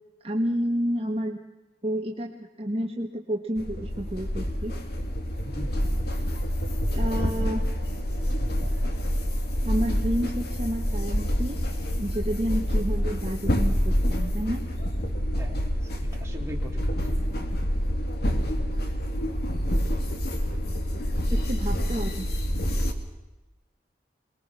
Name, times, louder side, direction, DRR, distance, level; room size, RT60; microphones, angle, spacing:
voice 1, 0.2-1.4 1.8-4.8 6.9-7.7 9.6-11.6 12.0-14.6 21.3-22.3, equal, 35° right, 1 dB, 1.4 m, -30 dB
sound 1, 3.6-22.9, equal, 60° left, 2.3 m, -27 dB
voice 2, 15.3-17.1, equal, 15° right, 0 dB, 2.7 m, -41 dB
23.0 x 20.5 x 6.1 m, 1.1 s
head